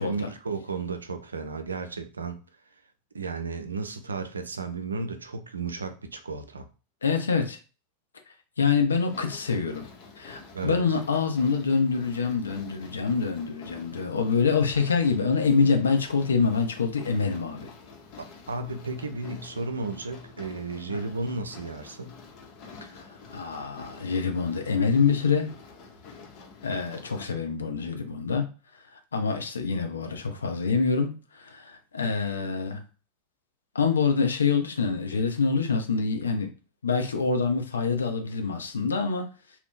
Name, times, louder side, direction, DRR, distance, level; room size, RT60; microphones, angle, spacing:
voice 1, 0.0-2.4 3.1-6.7 10.5-11.0 18.2-22.2, right 3 dB, 85° right, 8 dB, 0.4 m, -34 dB
voice 2, 7.0-7.6 8.6-9.9 10.2-17.7 20.9-21.0 23.0-23.1 23.3-25.5 26.6-28.5 29.1-32.8 33.7-36.5 36.8-39.3, left 5 dB, 85° left, 5 dB, 0.6 m, -26 dB
sound 1, 8.9-27.3, left 4 dB, 50° left, 0.9 m, -48 dB
2.7 x 2.2 x 3.7 m, 0.34 s
figure-of-eight pair, 90°, 0 cm